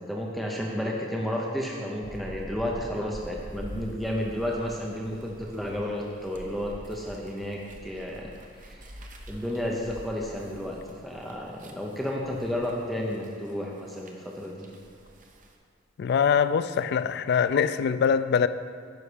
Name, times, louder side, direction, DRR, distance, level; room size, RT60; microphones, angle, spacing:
voice 1, 0.0-8.3 8.6-8.9 9.3-10.8 11.0-14.7, left 1 dB, ahead, 0.7 m, -32 dB
sound 1, 2.0-15.6, equal, 45° right, 0.8 m, -46 dB
voice 2, 16.0-18.5, left 7 dB, 55° left, 0.3 m, -23 dB
9.6 x 5.6 x 5.0 m
head